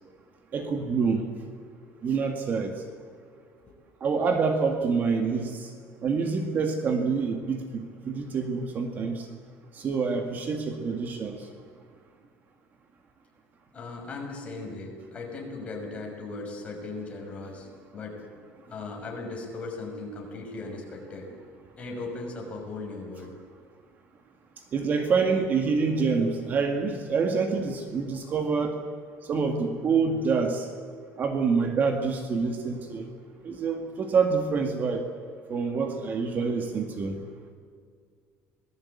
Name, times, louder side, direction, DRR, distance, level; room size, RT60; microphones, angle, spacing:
voice 1, 0.5-1.2 2.0-2.8 4.0-5.7 6.0-9.3 9.7-11.4 24.7-28.8 29.3-30.7 31.2-33.1 33.5-35.0 35.5-37.2, right 5 dB, 30° right, 5 dB, 1.9 m, -26 dB
voice 2, 13.7-18.2 18.7-21.3 21.8-23.3 33.4-33.6, left 3 dB, 20° left, 0 dB, 6.1 m, -38 dB
26.5 x 19.5 x 8.6 m, 2.1 s
cardioid pair, 160°, 5 cm